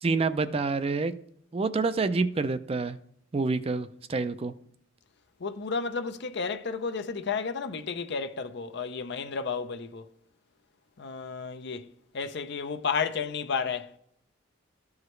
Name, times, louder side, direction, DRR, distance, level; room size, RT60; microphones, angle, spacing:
voice 1, 0.0-1.1 1.5-3.0 3.3-4.5, right 3 dB, 30° right, 0.4 m, -27 dB
voice 2, 5.4-10.1 11.0-11.9 12.1-13.9, left 5 dB, 60° left, 0.6 m, -32 dB
13.5 x 4.8 x 3.2 m
head